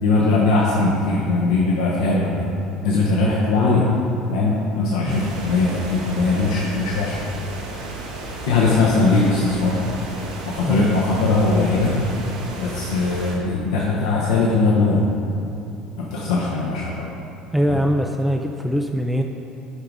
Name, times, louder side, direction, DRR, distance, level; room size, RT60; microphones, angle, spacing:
voice 1, 0.0-2.5 2.8-3.9 4.3-7.2 8.4-9.8 10.4-12.0 12.6-15.0 16.0-17.1 17.7-17.8, left 3 dB, 70° left, -5 dB, 1.0 m, -20 dB
sound 1, 5.1-13.4, right 2 dB, 75° right, 1.3 m, -34 dB
voice 2, 17.5-19.2, equal, ahead, 2 dB, 0.5 m, -22 dB
11.0 x 5.9 x 3.7 m, 2.7 s
figure-of-eight pair, 65°, 3 cm